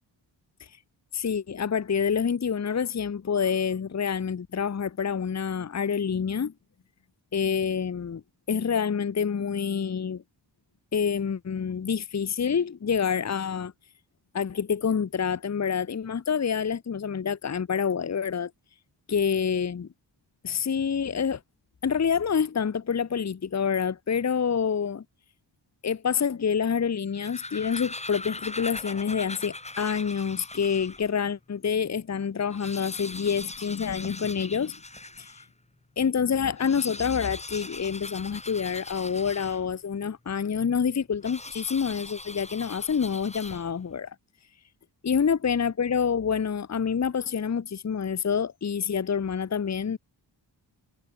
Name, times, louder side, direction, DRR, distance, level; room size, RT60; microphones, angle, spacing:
voice 1, 1.1-6.5 7.3-8.2 8.5-10.2 10.9-13.7 14.3-18.5 19.1-19.9 20.4-21.4 21.8-25.0 25.8-34.8 35.2-35.3 36.0-44.1 45.0-50.0, left 7 dB, 40° left, 1.0 m, -27 dB
sound 1, 27.0-31.1 31.7-31.8 32.0-32.1 32.4-35.5 36.5-39.9 41.2-43.9, left 2 dB, 15° left, 1.7 m, -41 dB
wide cardioid pair, 95°, 44 cm